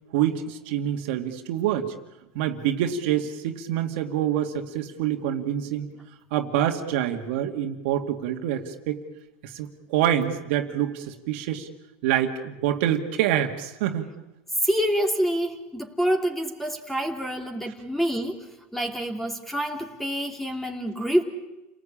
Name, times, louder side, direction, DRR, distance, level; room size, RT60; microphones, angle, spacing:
voice 1, 0.1-1.9 2.3-5.9 6.3-9.0 9.4-11.7 12.0-14.1, right 10 dB, 75° right, 4 dB, 2.3 m, -26 dB
voice 2, 14.6-18.4 18.7-21.2, equal, 5° left, 3 dB, 3.1 m, -27 dB
29.5 x 19.0 x 8.8 m, 1.0 s
supercardioid pair, 130°, 6 cm